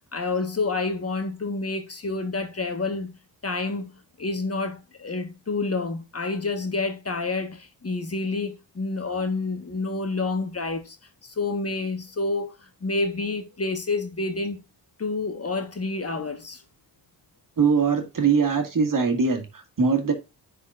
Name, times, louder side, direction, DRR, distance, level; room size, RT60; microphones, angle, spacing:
voice 1, 0.1-3.1 3.4-3.9 4.2-11.0 11.2-14.6 15.0-16.6, left 3 dB, 30° left, 1.3 m, -28 dB
voice 2, 17.6-20.1, right 5 dB, 45° right, 2.0 m, -22 dB
10.0 x 4.4 x 2.4 m
supercardioid pair, 55°, 46 cm